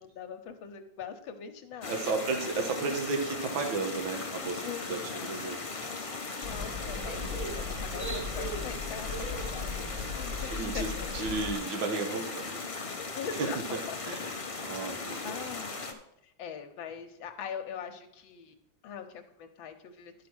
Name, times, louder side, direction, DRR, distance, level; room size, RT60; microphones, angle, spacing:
voice 1, 0.0-2.2 4.6-4.8 5.1-5.5 6.4-11.2 13.1-13.6 13.9-15.8 16.2-18.5 18.8-20.1, left 7 dB, 80° left, 6 dB, 1.6 m, -42 dB
sound 1, 1.8-15.9, left 4 dB, 50° left, 0.3 m, -38 dB
voice 2, 1.9-5.6 7.2-7.6 10.4-13.0 13.4-13.8 14.0-14.3 14.7-15.3, right 4 dB, 80° right, 3 dB, 1.9 m, -34 dB
sound 2, 6.4-11.5, left 2 dB, 25° right, 0.7 m, -37 dB
12.0 x 4.8 x 6.1 m, 0.80 s
omnidirectional pair, 2.1 m